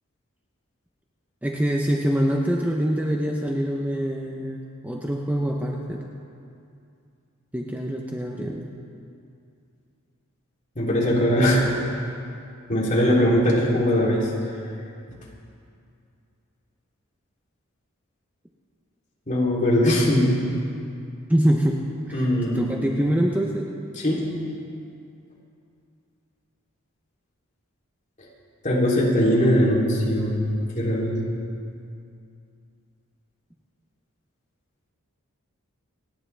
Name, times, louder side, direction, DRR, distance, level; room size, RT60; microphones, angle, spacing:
voice 1, 1.4-6.0 7.5-8.7 21.3-23.7, equal, 5° right, 0 dB, 0.7 m, -25 dB
voice 2, 10.7-11.6 12.7-14.3 19.3-20.4 22.1-22.7 24.0-24.2 28.6-30.4 30.7-31.2, equal, 35° left, -6 dB, 3.2 m, -20 dB
28.5 x 10.0 x 3.4 m, 2.5 s
head